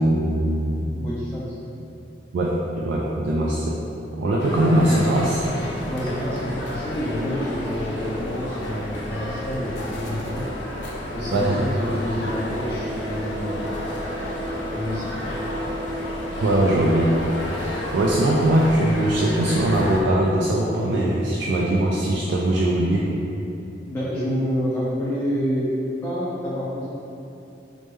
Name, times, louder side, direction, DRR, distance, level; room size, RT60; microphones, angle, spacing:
voice 1, 0.0-0.9 2.3-3.8 4.2-5.4 11.3-11.6 16.4-17.1 17.9-23.1, right 1 dB, 85° right, -4 dB, 0.3 m, -21 dB
voice 2, 0.9-1.6 5.9-10.5 11.1-13.7 14.7-15.3 23.9-25.7 26.0-26.8, equal, 15° left, -9 dB, 0.4 m, -28 dB
sound 1, 4.4-20.0, left 1 dB, 80° left, 0.5 m, -31 dB
sound 2, 11.6-20.2, equal, 20° right, 0.9 m, -37 dB
3.1 x 2.1 x 3.3 m, 2.8 s
head